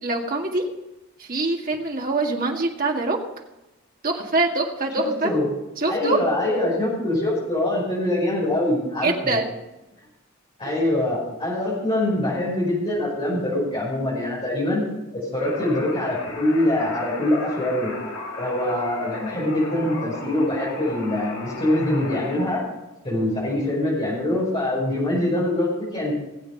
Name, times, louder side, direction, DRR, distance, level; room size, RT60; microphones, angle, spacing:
voice 1, 0.0-0.7 1.2-3.2 4.0-5.3 5.8-6.3 9.0-9.5 10.7-10.8, right 3 dB, 40° right, 1 dB, 2.0 m, -24 dB
voice 2, 5.0-5.5 5.9-9.4 10.6-14.8 15.1-17.9 18.4-22.6 23.0-26.1, left 1 dB, 25° left, -8 dB, 5.7 m, -24 dB
sound 1, 15.4-22.6, left 2 dB, 90° left, 4.9 m, -35 dB
19.5 x 8.0 x 5.3 m, 0.99 s
head